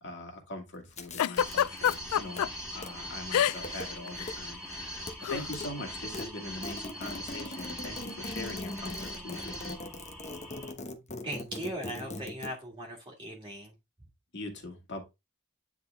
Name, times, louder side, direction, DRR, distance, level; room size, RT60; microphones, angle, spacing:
voice 1, 0.0-2.4 2.7-4.6 5.3-9.8 14.3-15.0, left 2 dB, 55° left, 2.3 m, -42 dB
sound 1, 0.8-1.9 2.3-2.9 3.5-3.9 4.2-4.3 4.7-5.2 5.4-5.7 6.0-12.5, left 2 dB, 30° left, 1.0 m, -41 dB
Giggle, 1.2-2.5 3.3-3.8 4.1-4.3 5.2-5.5, left 10 dB, 85° left, 0.3 m, -26 dB
sound 2, 1.4-10.7, equal, ahead, 2.3 m, -41 dB
voice 2, 11.2-13.7, equal, 20° right, 1.8 m, -39 dB
9.6 x 3.9 x 3.4 m
head